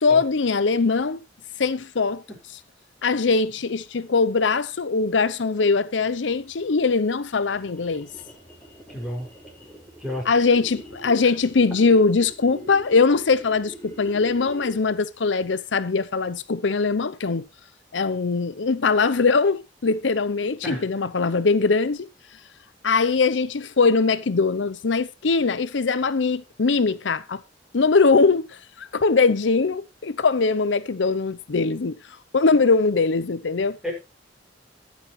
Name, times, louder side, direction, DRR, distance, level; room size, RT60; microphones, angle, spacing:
voice 1, 0.0-1.2 1.6-2.2 3.0-8.1 10.2-17.4 17.9-22.1 22.8-27.4 27.7-32.0 32.3-33.8, left 4 dB, 80° left, 0.7 m, -21 dB
sound 1, 6.3-15.0, right 1 dB, 10° left, 6.7 m, -44 dB
voice 2, 8.9-9.3 10.0-10.3 20.6-20.8 33.8-33.9, left 1 dB, 5° right, 6.0 m, -30 dB
20.0 x 7.3 x 3.2 m
head